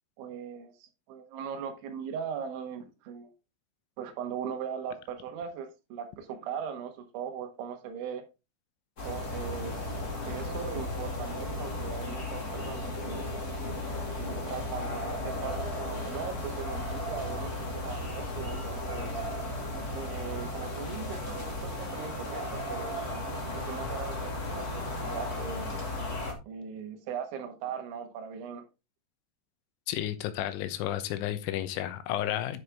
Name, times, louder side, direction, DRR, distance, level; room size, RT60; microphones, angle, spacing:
voice 1, 0.2-3.3 4.0-8.2 9.1-9.9 10.3-13.3 14.1-19.2 19.9-23.0 23.5-25.7 26.5-28.6, right 7 dB, 75° right, 3.6 m, -39 dB
sound 1, 9.0-26.3, left 1 dB, 40° left, 1.3 m, -35 dB
voice 2, 29.9-32.6, left 12 dB, 80° left, 3.4 m, -32 dB
9.8 x 6.1 x 3.5 m
omnidirectional pair, 5.5 m